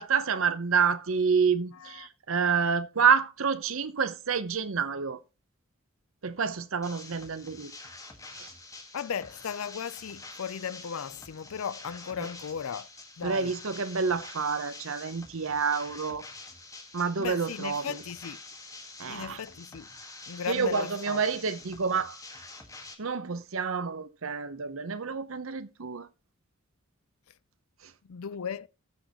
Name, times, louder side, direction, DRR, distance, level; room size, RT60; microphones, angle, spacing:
voice 1, 0.0-5.2 6.2-7.7 8.4-8.5 13.2-16.2 16.9-18.0 19.0-19.4 20.5-22.2 23.0-26.1, right 6 dB, 70° right, 0.8 m, -28 dB
voice 2, 1.7-2.1 8.9-12.9 13.2-13.5 17.2-18.4 19.1-19.9 20.3-21.3 28.0-28.7, left 7 dB, 80° left, 0.5 m, -36 dB
sound 1, 6.8-22.9, left 3 dB, 15° left, 1.6 m, -47 dB
19.0 x 6.4 x 3.0 m
head